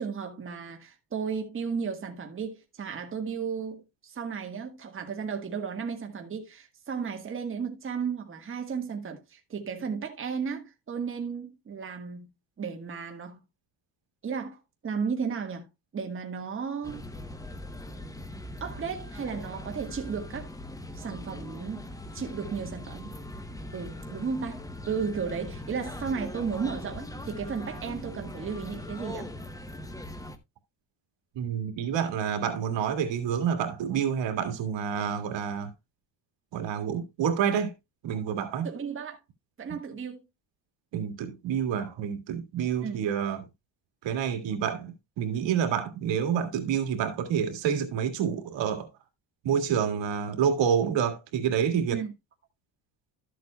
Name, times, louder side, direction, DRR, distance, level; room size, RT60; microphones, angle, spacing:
voice 1, 0.0-12.3 12.6-13.4 14.2-14.6 14.8-15.7 15.9-17.1 18.6-20.5 20.9-21.8 22.1-23.2 23.7-24.6 24.9-29.3 38.6-39.2 39.6-40.2 42.8-43.0 51.9-52.1, right 6 dB, 30° right, 1.5 m, -34 dB
sound 1, 16.8-30.4, left 1 dB, 10° left, 0.8 m, -41 dB
voice 2, 31.3-35.7 36.5-37.7 38.0-38.7 40.9-43.4 44.0-48.9 49.4-52.0, right 8 dB, 75° right, 2.0 m, -28 dB
13.0 x 7.8 x 2.3 m
cardioid pair, 130°, 45 cm